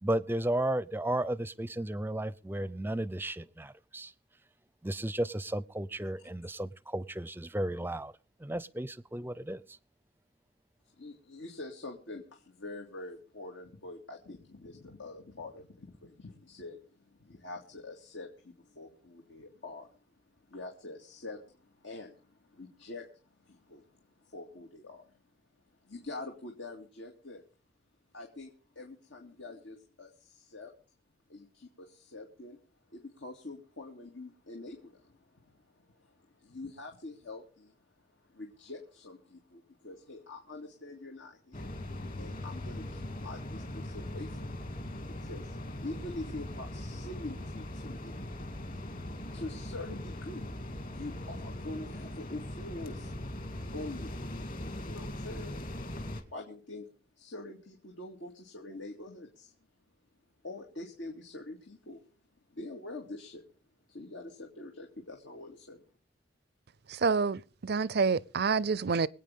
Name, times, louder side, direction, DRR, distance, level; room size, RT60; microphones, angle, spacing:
voice 1, 0.0-4.1 4.8-8.1 8.4-9.8, right 1 dB, 10° right, 0.5 m, -34 dB
voice 2, 11.0-19.9 20.5-23.1 23.4-25.1 25.8-27.4 28.1-30.7 31.3-32.6 32.9-48.2 49.3-50.5 50.9-53.1 53.7-54.1 54.8-55.7 56.3-56.9 57.2-59.5 60.4-62.0 62.5-63.4 63.9-65.8, left 2 dB, 90° left, 2.4 m, -45 dB
sound 1, 41.5-56.2, left 1 dB, 45° left, 2.3 m, -40 dB
voice 3, 67.0-69.1, right 5 dB, 60° right, 0.5 m, -28 dB
25.5 x 9.0 x 3.6 m
head